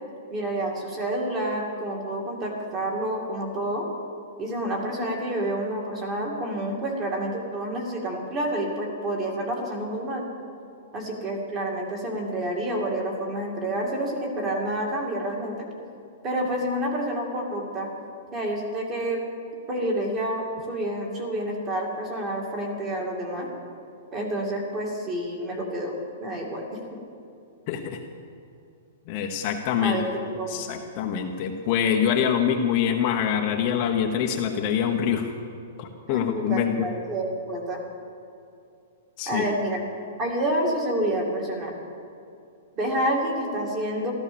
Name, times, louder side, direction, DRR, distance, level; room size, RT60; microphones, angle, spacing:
voice 1, 0.3-3.9 4.4-10.3 10.9-15.6 16.2-17.9 18.3-19.2 19.7-23.5 24.1-25.9 26.2-27.0 29.8-30.7 36.1-37.8 39.3-39.9 40.2-41.7 42.8-44.1, right 1 dB, 20° right, 0 dB, 2.3 m, -28 dB
voice 2, 29.1-30.0 30.5-35.3 35.8-36.8 39.2-39.4, left 8 dB, 30° left, 2 dB, 0.9 m, -25 dB
14.0 x 13.5 x 7.0 m, 2.6 s
hypercardioid pair, 175°, 0 cm